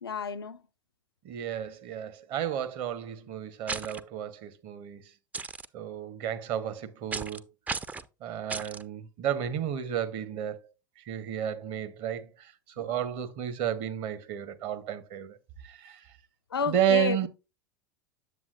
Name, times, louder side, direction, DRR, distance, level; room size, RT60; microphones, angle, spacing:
voice 1, 0.0-0.6 12.8-12.9 16.5-17.3, left 5 dB, 80° left, 0.4 m, -31 dB
voice 2, 1.2-5.0 5.7-7.4 8.2-10.7 11.1-15.4 15.6-16.0 16.7-17.3, right 9 dB, 45° right, 0.8 m, -32 dB
sound 1, 3.7-4.0 5.3-5.7 7.1-7.4 7.7-8.1 8.5-8.8, right 4 dB, 10° right, 0.3 m, -34 dB
8.1 x 7.3 x 2.4 m
figure-of-eight pair, 80°, 13 cm